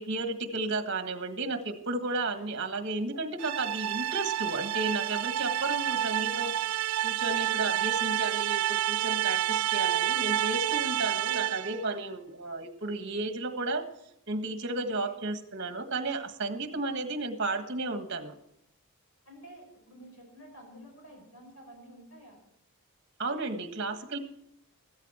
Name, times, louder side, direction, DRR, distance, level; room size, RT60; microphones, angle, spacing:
voice 1, 0.0-6.5 7.0-13.9 14.3-18.3 23.2-24.2, right 2 dB, 55° right, 7 dB, 1.5 m, -33 dB
sound 1, 3.4-11.8, right 12 dB, 90° right, 0.4 m, -29 dB
voice 2, 6.1-6.4 14.6-15.1 19.3-22.4, equal, 75° left, 2 dB, 5.6 m, -51 dB
14.5 x 13.5 x 4.4 m, 0.76 s
head